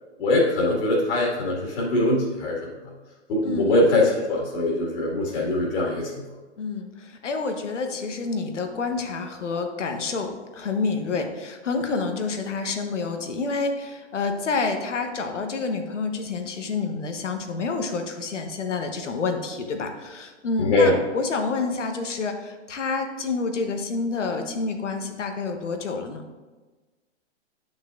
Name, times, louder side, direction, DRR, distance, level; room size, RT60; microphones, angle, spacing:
voice 1, 0.2-2.6 3.3-6.1 20.6-21.0, left 2 dB, 55° left, -4 dB, 2.2 m, -22 dB
voice 2, 3.4-3.7 6.6-26.2, left 4 dB, 85° left, 5 dB, 1.1 m, -28 dB
9.3 x 6.1 x 2.5 m, 1.3 s
hypercardioid pair, 130°, 35 cm